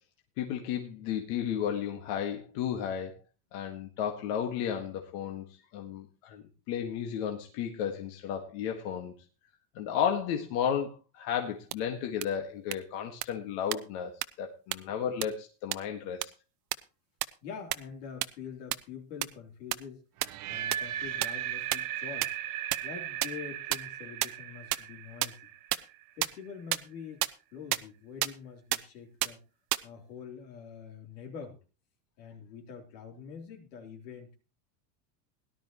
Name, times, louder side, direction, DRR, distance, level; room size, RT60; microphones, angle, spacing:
voice 1, 0.4-3.2 3.5-5.5 5.7-9.1 9.8-16.3, left 8 dB, 65° left, 3 dB, 1.9 m, -33 dB
sound 1, 11.7-11.8 12.2-12.3 12.7-12.8 13.2-13.3 13.7-13.8 14.2-14.3 14.7-14.8 15.2-15.3 15.7-15.8 16.2-16.3 16.7-16.8 17.2-17.3 17.7-17.8 18.2-18.3 18.7-18.8 19.2-19.3 19.7-19.8 20.2-20.3 20.7-20.8 21.2-21.3 21.7-21.8 22.2-22.3 22.7-22.8 23.2-23.3 23.7-23.8 24.2-24.3 24.7-24.8 25.2-25.3 25.7-25.8 26.2-26.3 26.7-26.8 27.2-27.3 27.7-27.8 28.2-28.3 28.7-28.8 29.2-29.3 29.7-29.8, right 19 dB, 75° right, 0.9 m, -27 dB
voice 2, 17.4-20.0 20.5-22.3 22.8-25.5 26.2-29.4 29.8-31.6 32.2-34.3, left 6 dB, 90° left, 2 dB, 3.5 m, -45 dB
sound 2, 20.2-26.2, right 11 dB, 40° right, 0.9 m, -37 dB
17.5 x 11.5 x 3.0 m, 0.32 s
supercardioid pair, 130°, 48 cm